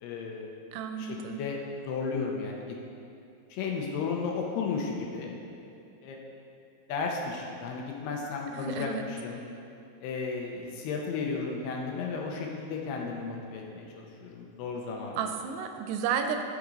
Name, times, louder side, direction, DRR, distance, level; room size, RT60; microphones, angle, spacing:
voice 1, 0.0-0.5 1.0-2.7 3.5-5.4 6.0-6.2 6.9-9.4 10.0-15.2, left 4 dB, 75° left, 0 dB, 2.8 m, -34 dB
voice 2, 0.7-1.4 8.5-9.0 15.2-16.4, right 7 dB, 85° right, 5 dB, 2.7 m, -32 dB
13.0 x 6.2 x 3.9 m, 2.7 s
omnidirectional pair, 4.8 m